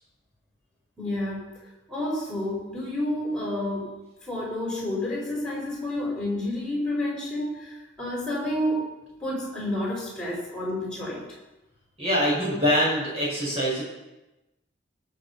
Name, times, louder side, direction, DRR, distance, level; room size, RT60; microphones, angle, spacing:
voice 1, 1.0-1.5 1.9-3.9 4.2-8.8 9.2-11.3, left 1 dB, 5° left, -3 dB, 4.8 m, -29 dB
voice 2, 12.0-13.8, equal, 35° right, -5 dB, 5.9 m, -24 dB
18.5 x 6.7 x 5.8 m, 1.0 s
head